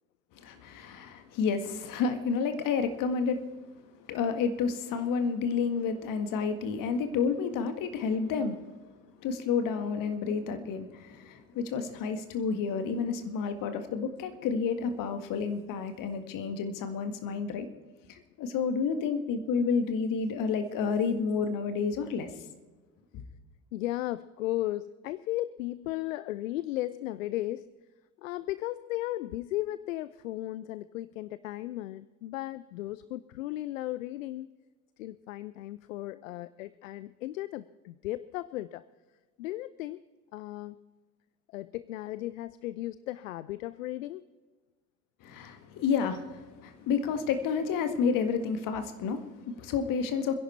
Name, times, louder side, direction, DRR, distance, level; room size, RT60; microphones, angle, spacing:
voice 1, 0.4-3.4 4.1-8.6 9.2-17.7 18.1-22.3 23.1-23.2 45.2-50.3, left 5 dB, 50° left, 8 dB, 1.9 m, -30 dB
voice 2, 23.7-27.7 28.2-34.5 35.0-38.8 39.4-40.0 40.3-40.8 41.5-44.2, left 16 dB, 70° left, 17 dB, 0.6 m, -35 dB
27.0 x 11.0 x 4.4 m, 1.3 s
figure-of-eight pair, 65°, 42 cm